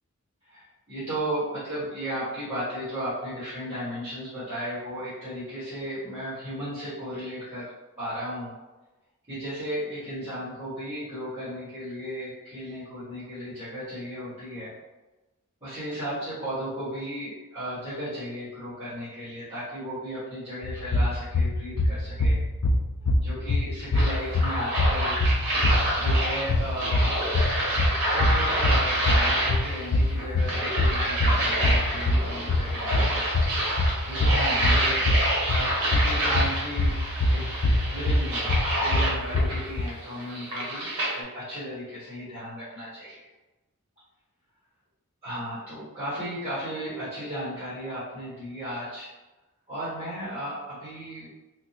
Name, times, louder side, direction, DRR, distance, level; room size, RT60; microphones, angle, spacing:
voice 1, 0.4-7.7 8.0-8.5 9.3-14.7 15.6-22.4 23.2-25.2 25.5-27.0 27.7-33.3 34.0-36.9 37.3-38.5 38.8-43.3 45.2-49.1 49.7-51.3, equal, 25° right, -15 dB, 1.4 m, -35 dB
sound 1, 20.6-39.8, left 1 dB, 65° left, 0.3 m, -25 dB
sound 2, 23.9-41.2, right 1 dB, 90° right, 1.2 m, -28 dB
3.6 x 2.3 x 2.8 m, 1.1 s
head